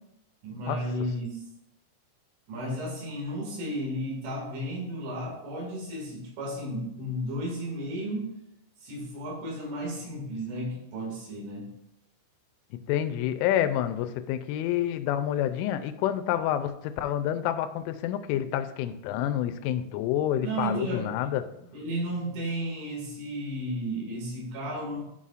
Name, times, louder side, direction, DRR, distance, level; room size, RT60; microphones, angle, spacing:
voice 1, 0.4-1.4 2.5-8.3 8.8-11.7 20.4-21.1 21.4-25.0, right 1 dB, 85° right, -2 dB, 4.7 m, -33 dB
voice 2, 12.9-21.4, left 11 dB, 90° left, 10 dB, 3.0 m, -28 dB
13.0 x 5.6 x 2.5 m, 0.81 s
omnidirectional pair, 5.4 m